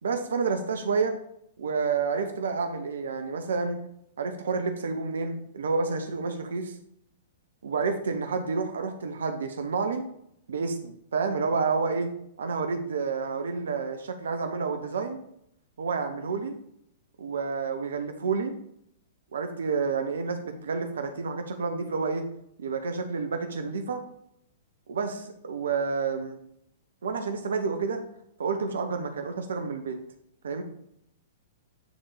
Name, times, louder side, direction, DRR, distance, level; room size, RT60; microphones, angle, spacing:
voice 1, 0.0-1.2 1.6-3.9 4.2-6.8 7.6-10.0 10.5-15.2 15.8-16.6 17.2-18.6 19.3-22.3 22.6-24.0 24.9-26.4 27.0-28.0 28.4-30.0 30.4-30.6, right 4 dB, 65° right, 6 dB, 0.8 m, -29 dB
9.4 x 3.7 x 5.0 m, 0.73 s
figure-of-eight pair, 105°, 0 cm